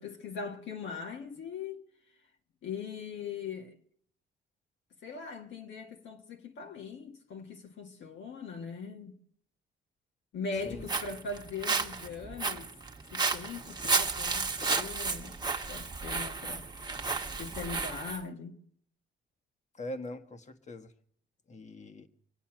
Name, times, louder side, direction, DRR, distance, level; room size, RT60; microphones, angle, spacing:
voice 1, 0.0-1.9 2.6-3.8 5.0-9.2 10.3-12.7 13.1-15.4 15.7-16.7 17.4-18.6, left 5 dB, 70° left, 1.8 m, -40 dB
Walk footsteps, 10.6-18.2, right 4 dB, 20° right, 1.3 m, -33 dB
voice 2, 19.7-20.9 21.5-22.1, left 1 dB, 35° left, 1.5 m, -42 dB
25.0 x 8.4 x 6.0 m
cardioid pair, 90°, 20 cm